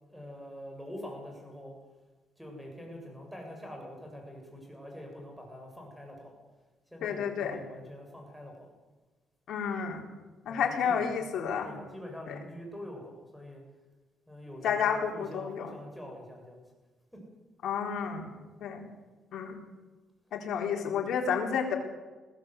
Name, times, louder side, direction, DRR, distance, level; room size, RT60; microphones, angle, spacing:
voice 1, 0.1-1.8 2.4-6.4 6.9-8.7 10.5-11.4 11.6-13.6 14.3-16.6 17.1-17.3, equal, ahead, 1 dB, 7.9 m, -45 dB
voice 2, 7.0-7.6 9.5-10.0 10.5-11.7 12.3-12.4 14.6-15.7 17.6-18.2 18.6-18.9 19.3-19.6 20.3-21.8, left 7 dB, 70° left, 1 dB, 4.0 m, -30 dB
21.0 x 16.0 x 8.3 m, 1.2 s
cardioid pair, 90°, 0 cm